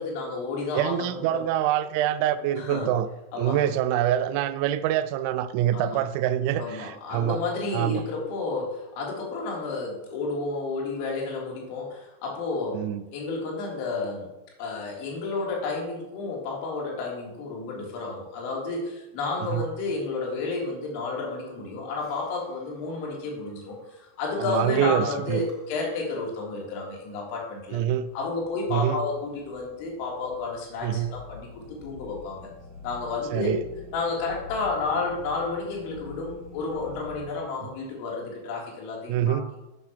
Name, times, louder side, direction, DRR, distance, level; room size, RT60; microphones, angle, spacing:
voice 1, 0.0-1.4 2.6-2.9 3.3-3.6 5.7-6.0 6.6-12.8 13.1-14.3 14.6-27.8 28.1-32.5 32.8-33.5 33.9-39.4, left 3 dB, 45° left, -2 dB, 3.3 m, -31 dB
voice 2, 0.7-3.1 3.4-7.4 7.7-8.0 12.7-13.0 19.4-19.6 24.4-25.4 27.7-28.1 28.7-29.0 30.8-31.1 33.3-33.6 39.1-39.5, right 11 dB, 45° right, 13 dB, 0.5 m, -25 dB
sound 1, 22.0-37.3, left 4 dB, 15° left, 3.9 m, -48 dB
10.5 x 9.7 x 3.1 m, 0.99 s
figure-of-eight pair, 90°, 0 cm